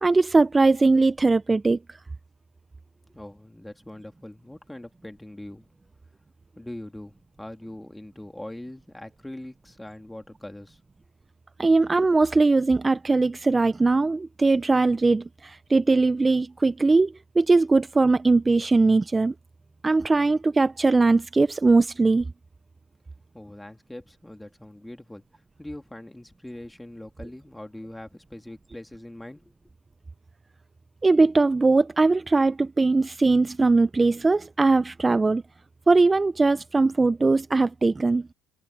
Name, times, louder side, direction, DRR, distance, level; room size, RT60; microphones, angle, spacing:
voice 1, 0.0-2.0 11.6-19.3 19.8-22.3 31.0-35.4 35.9-38.2, right 3 dB, 20° right, 0.8 m, -20 dB
voice 2, 3.1-5.7 6.5-10.8 23.3-25.2 25.6-29.5, left 1 dB, 10° left, 3.2 m, -42 dB
hypercardioid pair, 65°, 0 cm